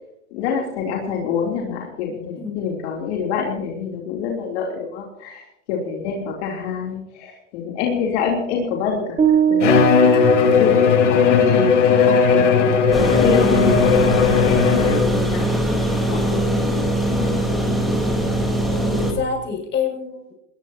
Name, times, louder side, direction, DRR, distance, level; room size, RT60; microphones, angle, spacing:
voice 1, 0.3-12.5 13.0-15.6 16.1-16.4 16.7-17.5, left 6 dB, 65° left, -1 dB, 3.5 m, -27 dB
voice 2, 2.1-2.6 18.7-20.4, left 6 dB, 30° left, 1 dB, 6.9 m, -27 dB
sound 1, 9.2-11.4, right 8 dB, 20° right, 2.6 m, -21 dB
Bowed string instrument, 9.6-15.2, left 6 dB, 85° left, 4.3 m, -16 dB
sound 2, 12.9-19.1, right 1 dB, ahead, 4.1 m, -21 dB
22.0 x 20.5 x 2.9 m, 0.81 s
hypercardioid pair, 120°, 36 cm